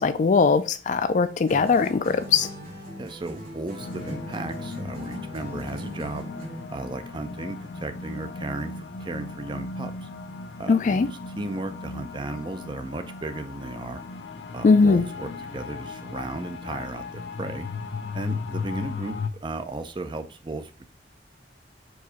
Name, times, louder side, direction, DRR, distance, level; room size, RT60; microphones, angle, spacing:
voice 1, 0.0-2.5 10.7-11.1 14.6-15.1, left 4 dB, 45° left, 0.4 m, -20 dB
sound 1, 1.5-6.8, equal, 55° right, 2.3 m, -40 dB
voice 2, 3.0-6.3 6.7-8.7 9.0-10.1 10.6-14.0 14.5-17.7 18.1-20.9, right 2 dB, 25° right, 0.4 m, -35 dB
sound 2, 3.8-19.3, left 4 dB, 85° left, 0.6 m, -36 dB
4.7 x 2.6 x 4.2 m
head